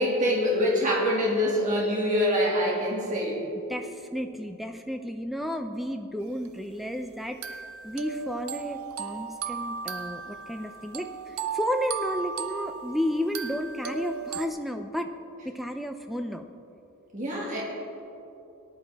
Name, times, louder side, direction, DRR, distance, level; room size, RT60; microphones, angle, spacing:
voice 1, 0.0-3.4 17.1-17.6, equal, 35° right, -4 dB, 2.2 m, -25 dB
voice 2, 3.7-15.1 15.4-16.5, equal, ahead, 6 dB, 0.5 m, -32 dB
sound 1, 6.5-6.6 7.4-14.5, right 6 dB, 80° right, 0.7 m, -36 dB
18.5 x 11.0 x 3.6 m, 2.9 s
head